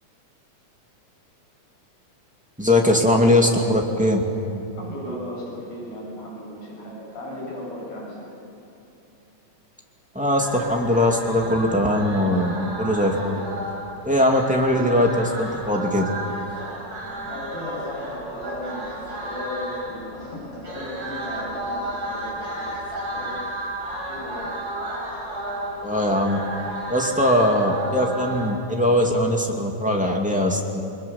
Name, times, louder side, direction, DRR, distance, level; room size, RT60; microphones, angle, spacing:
voice 1, 2.6-4.2 10.1-13.4 14.0-16.1 25.8-26.4 26.9-30.8, left 1 dB, 5° right, 0 dB, 1.9 m, -20 dB
voice 2, 4.8-8.3 17.2-23.4 24.0-24.5, left 1 dB, 60° left, -5 dB, 8.9 m, -35 dB
sound 1, 10.4-28.5, right 1 dB, 40° right, 5.3 m, -33 dB
29.5 x 21.5 x 7.2 m, 2.8 s
omnidirectional pair, 3.5 m